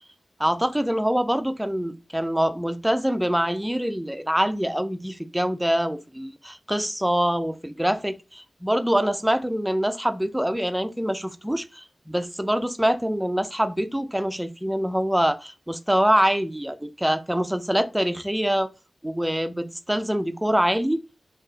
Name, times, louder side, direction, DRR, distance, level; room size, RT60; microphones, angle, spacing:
voice 1, 0.4-18.7 19.0-21.0, equal, 5° right, 0.4 m, -24 dB
5.8 x 2.8 x 2.7 m
wide cardioid pair, 70°, 0 cm